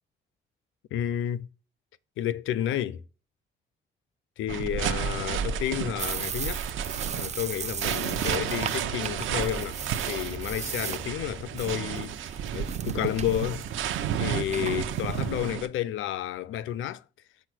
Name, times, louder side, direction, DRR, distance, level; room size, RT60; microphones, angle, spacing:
voice 1, 0.9-1.5 2.2-3.0 4.4-6.6 7.2-9.8 10.1-13.7 14.2-17.0, left 11 dB, 80° left, 0.6 m, -31 dB
sound 1, 4.5-15.7, right 9 dB, 80° right, 0.8 m, -32 dB
sound 2, 6.0-15.5, right 7 dB, 35° right, 0.4 m, -37 dB
6.5 x 6.2 x 6.2 m
cardioid pair, 90°, 20 cm